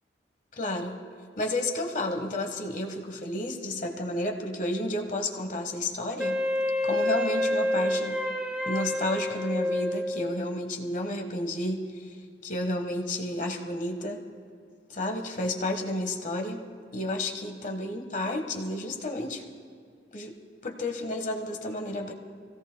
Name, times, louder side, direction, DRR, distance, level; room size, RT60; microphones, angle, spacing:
voice 1, 0.6-1.0 1.4-6.4 6.8-8.2 8.6-12.2 12.4-14.2 14.9-16.6 16.9-19.4 20.1-20.3 20.6-22.1, left 1 dB, 45° left, 3 dB, 1.4 m, -31 dB
Wind instrument woodwind instrument, 6.2-10.5, left 1 dB, 5° right, 1.0 m, -28 dB
26.0 x 17.0 x 2.3 m, 2.2 s
head